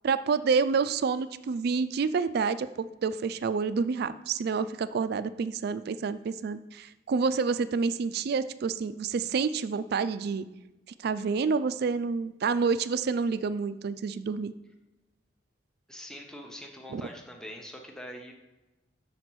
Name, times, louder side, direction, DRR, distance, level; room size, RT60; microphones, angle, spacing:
voice 1, 0.0-10.5 11.0-14.5 16.9-17.0, right 5 dB, 60° right, 14 dB, 0.4 m, -28 dB
voice 2, 15.9-18.3, equal, 5° left, 1 dB, 0.8 m, -43 dB
6.7 x 4.0 x 6.1 m, 1.0 s
head